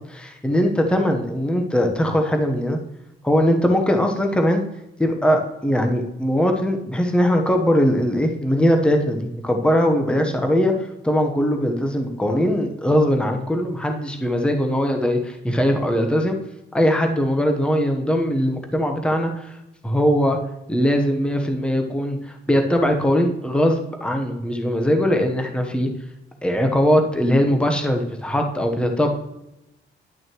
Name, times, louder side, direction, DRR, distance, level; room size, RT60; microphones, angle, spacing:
voice 1, 0.1-2.8 3.2-4.6 5.0-16.4 16.7-19.6 19.8-20.4 20.7-25.9 26.4-29.1, equal, 5° left, 3 dB, 1.0 m, -20 dB
11.0 x 6.1 x 3.0 m, 0.89 s
cardioid pair, 90°, 20 cm